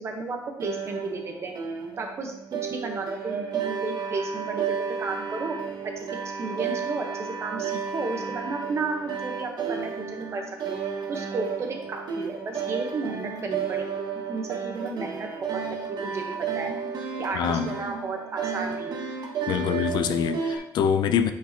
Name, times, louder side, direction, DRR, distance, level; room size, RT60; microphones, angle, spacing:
voice 1, 0.0-1.5 2.0-5.5 6.0-6.1 6.4-10.8 11.1-15.3 15.7-16.2 16.5-16.7 17.2-19.1, right 3 dB, 35° right, 3 dB, 1.1 m, -33 dB
sound 1, 0.6-20.6, right 6 dB, 60° right, 1.2 m, -32 dB
voice 2, 17.3-17.8 19.5-21.3, left 8 dB, 70° left, 9 dB, 0.5 m, -25 dB
8.8 x 5.1 x 2.9 m, 0.82 s
cardioid pair, 160°, 8 cm